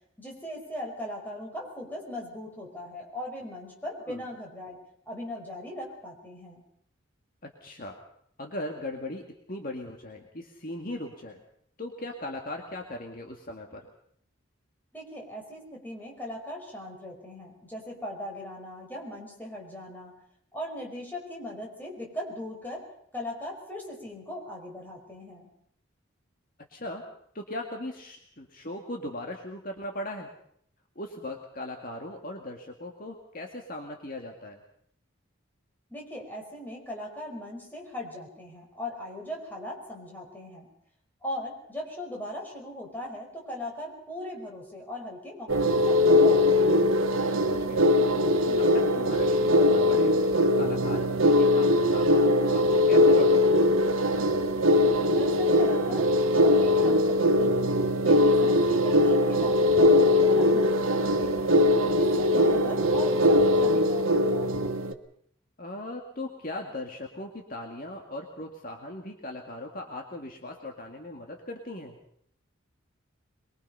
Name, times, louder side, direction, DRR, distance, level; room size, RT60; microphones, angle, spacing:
voice 1, 0.2-4.8 5.1-6.6 14.9-20.2 20.5-22.9 23.1-25.5 35.9-40.7 41.2-46.9 55.1-57.5 58.0-61.5 62.0-64.7, left 1 dB, 10° left, -1 dB, 5.3 m, -39 dB
voice 2, 7.6-8.0 8.4-11.4 11.8-13.8 26.7-27.0 27.3-30.3 31.0-34.6 47.4-47.9 48.5-50.1 50.4-53.7 63.3-63.4 65.6-72.0, left 1 dB, 45° left, 2 dB, 2.2 m, -38 dB
sound 1, 45.5-64.9, left 1 dB, 85° right, 1.5 m, -21 dB
23.0 x 22.5 x 5.6 m, 0.67 s
head